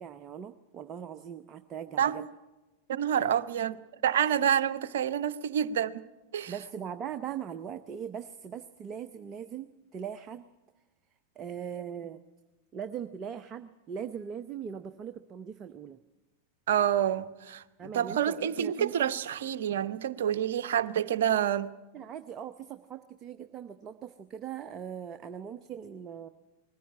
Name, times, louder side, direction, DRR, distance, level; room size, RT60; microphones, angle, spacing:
voice 1, 0.0-2.2 6.5-10.5 11.4-12.2 12.7-16.0 17.8-18.9 21.9-26.3, right 8 dB, 30° right, 0.8 m, -40 dB
voice 2, 2.9-3.8 4.0-6.0 6.3-6.5 16.7-21.7, right 9 dB, 60° right, 0.8 m, -28 dB
20.5 x 15.0 x 9.7 m
figure-of-eight pair, 90°, 0 cm